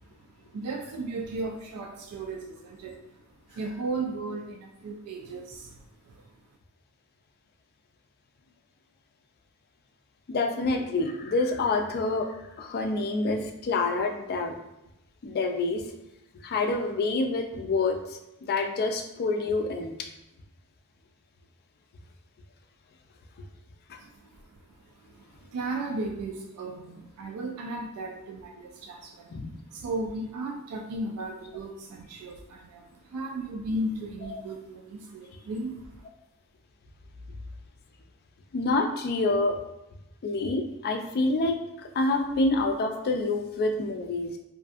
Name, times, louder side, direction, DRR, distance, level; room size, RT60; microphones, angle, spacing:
voice 1, 0.0-3.2 3.5-6.3 24.0-24.6 25.0-29.3 29.7-36.1, right 2 dB, 90° right, 2 dB, 0.3 m, -36 dB
voice 2, 10.3-12.3 12.6-14.6 15.2-15.8 16.4-20.0 29.3-29.5 34.3-34.4 38.5-39.6 40.2-41.6 41.9-44.4, left 3 dB, 45° left, 4 dB, 0.3 m, -27 dB
2.5 x 2.4 x 2.4 m, 0.89 s
head